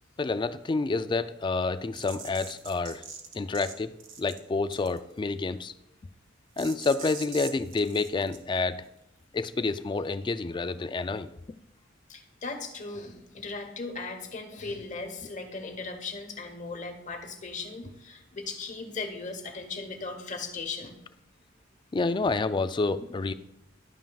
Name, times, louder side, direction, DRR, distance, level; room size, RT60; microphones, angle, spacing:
voice 1, 0.2-3.0 3.3-5.7 6.6-8.8 9.3-11.3 21.9-23.3, left 3 dB, 25° left, 12 dB, 0.3 m, -28 dB
sound 1, 1.9-3.7 4.0-4.4 4.7-5.1 6.6-8.4, right 6 dB, 75° right, 1.1 m, -42 dB
voice 2, 12.1-21.0, left 3 dB, 40° left, 6 dB, 1.0 m, -38 dB
11.5 x 9.1 x 2.4 m, 0.83 s
head